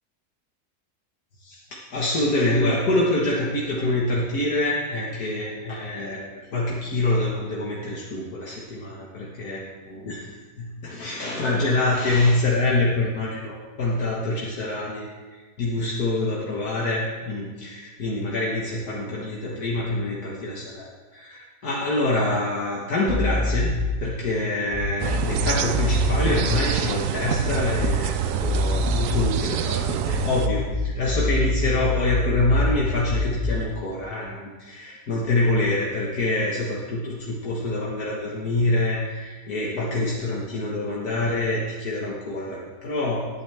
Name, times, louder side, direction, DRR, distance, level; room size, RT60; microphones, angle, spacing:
voice 1, 1.9-10.3 10.6-43.3, left 2 dB, 75° left, -4 dB, 2.1 m, -26 dB
sound 1, 23.1-24.0 24.7-26.6 27.4-28.1 28.4-29.4 30.0-33.7, left 2 dB, ahead, 1.8 m, -26 dB
sound 2, 25.0-30.5, right 10 dB, 65° right, 0.9 m, -27 dB
18.0 x 10.0 x 3.5 m, 1.3 s
omnidirectional pair, 1.6 m